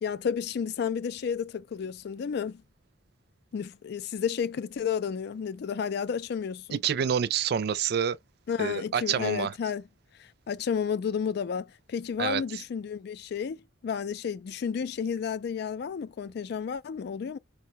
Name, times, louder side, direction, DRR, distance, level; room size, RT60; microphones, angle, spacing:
voice 1, 0.0-2.6 3.5-6.8 8.5-9.8 10.2-17.4, left 7 dB, 55° left, 0.3 m, -32 dB
voice 2, 6.7-8.2 8.6-9.5 12.2-12.6, right 8 dB, 55° right, 0.3 m, -28 dB
4.6 x 2.2 x 2.8 m
head